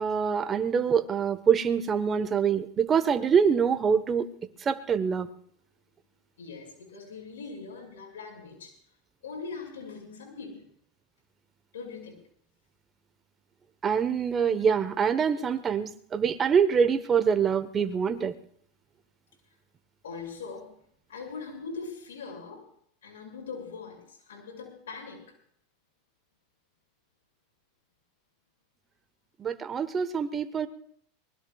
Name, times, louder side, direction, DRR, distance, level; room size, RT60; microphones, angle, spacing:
voice 1, 0.0-4.3 4.6-5.3 13.8-18.3 29.4-30.7, right 6 dB, 25° right, 10 dB, 1.1 m, -25 dB
voice 2, 6.4-8.7 9.2-10.6 11.7-12.2 20.0-20.7 21.1-22.7 23.0-25.3, left 4 dB, 90° left, 2 dB, 5.7 m, -41 dB
23.5 x 20.0 x 2.4 m, 0.63 s
hypercardioid pair, 105°, 0 cm